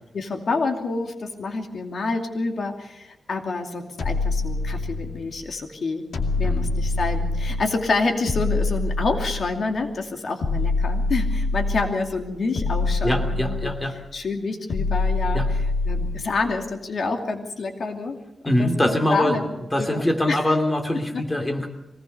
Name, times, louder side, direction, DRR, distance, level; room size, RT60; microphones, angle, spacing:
voice 1, 0.1-6.1 6.4-13.7 14.1-15.4 15.9-18.2 18.4-19.5 19.8-20.0 20.3-20.4, left 3 dB, 60° left, 4 dB, 2.6 m, -28 dB
sound 1, 4.0-5.3 6.1-7.8 8.3-9.7 10.4-12.0 12.6-14.0 14.7-16.3, left 3 dB, 90° left, 2.4 m, -25 dB
voice 2, 13.0-14.0 15.3-15.5 18.4-19.4 19.7-21.7, left 1 dB, 15° left, 4 dB, 2.9 m, -23 dB
24.0 x 19.0 x 6.8 m, 0.93 s
wide cardioid pair, 135°, 0 cm